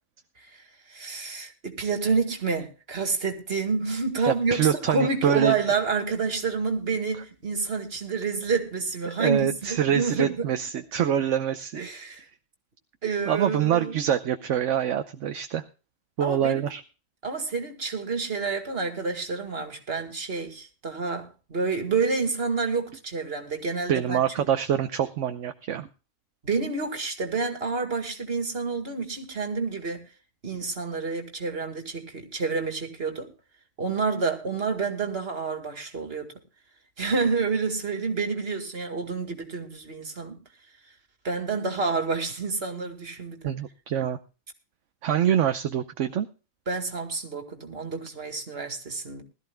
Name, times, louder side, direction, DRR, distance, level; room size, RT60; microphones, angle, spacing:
voice 1, 0.9-10.4 11.7-12.3 13.0-14.0 16.2-16.7 17.2-24.5 26.4-30.0 30.4-33.3 33.8-36.3 37.0-40.4 41.2-43.5 46.7-49.2, right 4 dB, 45° right, 2.3 m, -29 dB
voice 2, 4.3-5.5 9.1-11.9 13.3-15.6 16.2-16.8 23.9-25.9 43.4-44.2 45.0-46.3, right 9 dB, 70° right, 1.1 m, -25 dB
20.5 x 13.5 x 2.2 m
omnidirectional pair, 1.4 m